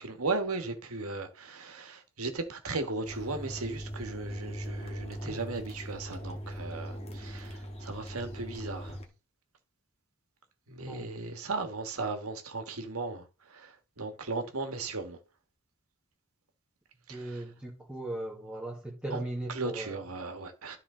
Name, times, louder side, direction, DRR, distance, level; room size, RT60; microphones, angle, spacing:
voice 1, 0.0-9.0 10.7-15.2 17.1-17.4 19.1-19.2 19.5-20.8, right 3 dB, 75° right, 1.6 m, -36 dB
sound 1, 3.0-9.1, equal, 30° left, 1.6 m, -40 dB
voice 2, 17.1-20.0, right 1 dB, 5° right, 1.5 m, -38 dB
12.5 x 4.5 x 3.8 m
head